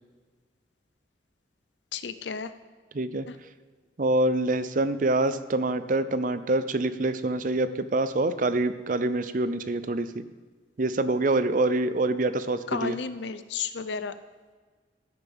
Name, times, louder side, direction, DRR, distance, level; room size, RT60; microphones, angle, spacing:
voice 1, 1.9-2.5 3.3-3.4 12.7-14.1, left 5 dB, 80° left, 12 dB, 0.6 m, -32 dB
voice 2, 2.9-3.3 4.0-10.2 10.8-13.0, right 2 dB, 45° right, 13 dB, 0.6 m, -26 dB
15.5 x 9.5 x 3.6 m, 1.5 s
head